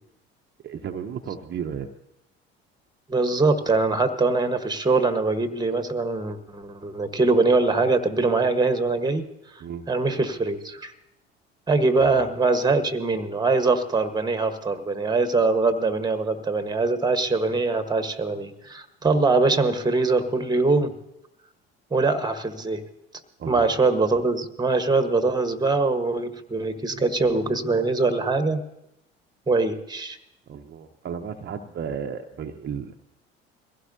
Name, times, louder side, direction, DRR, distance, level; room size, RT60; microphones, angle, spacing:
voice 1, 0.6-1.9 9.6-9.8 12.0-12.3 23.4-23.8 30.5-32.9, right 7 dB, 35° right, 4 dB, 0.8 m, -34 dB
voice 2, 3.1-9.3 9.5-10.9 11.7-20.9 21.9-22.8 23.5-28.6 29.5-30.2, right 3 dB, 15° right, 10 dB, 1.3 m, -23 dB
22.0 x 16.0 x 2.8 m, 0.84 s
hypercardioid pair, 60°, 32 cm